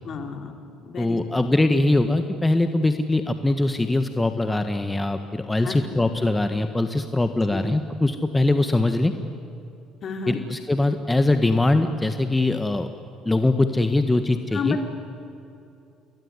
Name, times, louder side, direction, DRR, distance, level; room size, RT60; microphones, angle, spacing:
voice 1, 0.0-0.6 0.8-1.2 5.6-6.0 7.5-7.6 10.0-10.4 14.5-14.8, left 5 dB, 50° left, 4 dB, 3.9 m, -30 dB
voice 2, 1.0-9.1 10.3-12.9 13.2-14.8, left 2 dB, 15° left, 8 dB, 1.6 m, -22 dB
28.5 x 21.0 x 9.9 m, 2.7 s
hypercardioid pair, 65°, 0 cm